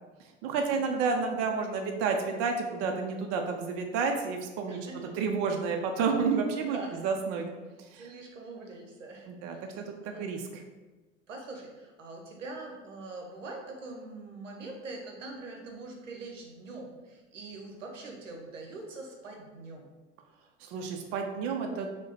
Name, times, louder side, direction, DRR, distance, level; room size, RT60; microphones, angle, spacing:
voice 1, 0.4-4.8 5.1-6.8 7.0-7.5 7.8-8.1 9.3-10.6 20.6-21.9, right 5 dB, 40° right, 3 dB, 0.5 m, -30 dB
voice 2, 4.7-5.1 6.7-7.1 7.9-10.3 11.3-19.9, right 2 dB, 80° right, 1 dB, 0.8 m, -43 dB
4.7 x 2.2 x 4.0 m, 1.2 s
figure-of-eight pair, 70°, 37 cm